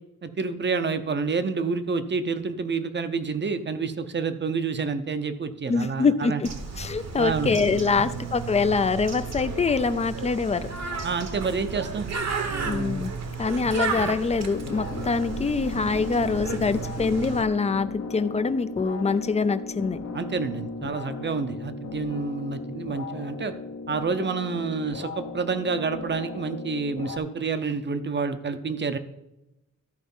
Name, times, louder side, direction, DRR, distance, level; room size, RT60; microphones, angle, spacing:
voice 1, 0.2-6.4 7.2-7.5 11.0-12.1 12.5-13.0 13.7-13.8 20.1-23.5 23.9-29.0, right 4 dB, 35° right, 10 dB, 0.7 m, -28 dB
voice 2, 5.7-6.5 6.8-10.8 12.6-13.1 13.4-20.0, left 4 dB, 20° left, 13 dB, 0.4 m, -24 dB
Bird, 6.4-17.4, right 5 dB, 55° right, 1.1 m, -33 dB
sound 1, 14.5-27.2, left 4 dB, 50° left, 0.9 m, -37 dB
13.0 x 4.8 x 5.4 m, 0.92 s
wide cardioid pair, 155°, 32 cm